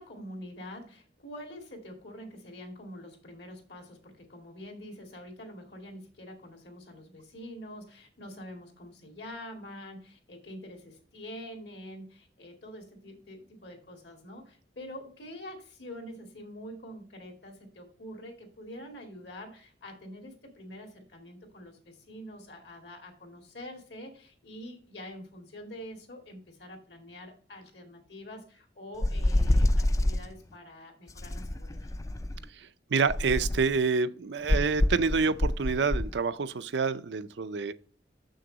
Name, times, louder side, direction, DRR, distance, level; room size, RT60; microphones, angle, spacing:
voice 1, 0.0-31.9, equal, 70° left, 2.3 m, -46 dB
sound 1, 29.0-30.2 31.2-32.4 33.1-33.8 34.5-36.1, left 1 dB, 20° left, 0.4 m, -26 dB
voice 2, 32.6-37.7, right 5 dB, 80° right, 0.5 m, -28 dB
6.8 x 6.5 x 3.9 m
head